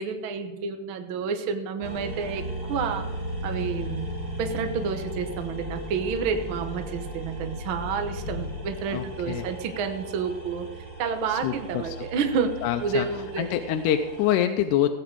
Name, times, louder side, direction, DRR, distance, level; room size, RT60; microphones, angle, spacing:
voice 1, 0.0-2.4 2.7-3.0 3.4-4.1 4.4-10.6 11.0-12.5 12.8-13.5, right 6 dB, 60° right, 6 dB, 1.4 m, -29 dB
sound 1, 1.8-14.3, equal, 15° right, 1.5 m, -36 dB
voice 2, 8.9-9.5 11.3-11.5 11.8-12.0 12.6-13.1 13.4-14.9, left 10 dB, 85° left, 7 dB, 2.2 m, -25 dB
16.5 x 8.7 x 4.7 m, 1.1 s
omnidirectional pair, 3.6 m